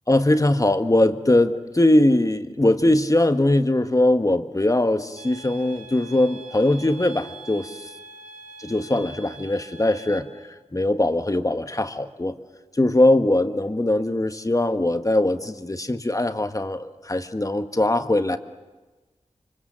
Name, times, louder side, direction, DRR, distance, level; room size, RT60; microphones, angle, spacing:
voice 1, 0.1-7.8 8.7-10.3 10.7-12.3 12.8-18.4, left 1 dB, 25° left, 9 dB, 1.4 m, -21 dB
sound 1, 5.2-10.2, right 3 dB, 80° right, 4.5 m, -44 dB
24.5 x 24.0 x 7.5 m, 1.2 s
cardioid pair, 50°, 12 cm